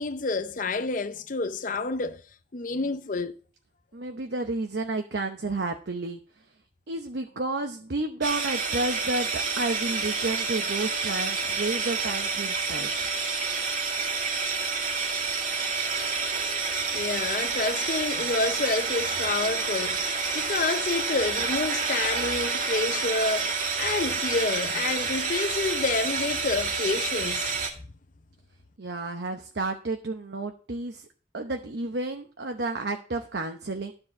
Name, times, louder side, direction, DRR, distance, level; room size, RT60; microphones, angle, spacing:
voice 1, 0.0-2.2 2.5-3.4 16.9-27.6, left 3 dB, 45° left, 0.6 m, -29 dB
voice 2, 3.9-6.2 6.9-13.1 28.8-31.1 31.3-33.9, right 2 dB, 70° right, 0.8 m, -31 dB
sound 1, 8.2-27.7, right 4 dB, 45° right, 1.9 m, -29 dB
12.5 x 4.7 x 7.2 m
head